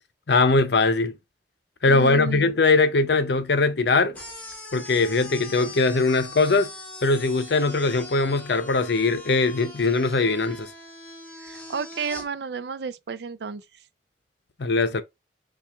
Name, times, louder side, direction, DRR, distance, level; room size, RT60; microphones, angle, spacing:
voice 1, 0.3-1.2 1.8-4.2 4.7-6.7 7.0-10.7 14.6-15.0, left 3 dB, 65° left, 0.6 m, -21 dB
voice 2, 1.9-2.5 11.4-13.6, right 5 dB, 60° right, 0.4 m, -32 dB
sound 1, 4.1-12.3, left 1 dB, 10° left, 1.2 m, -41 dB
5.8 x 2.4 x 3.4 m
head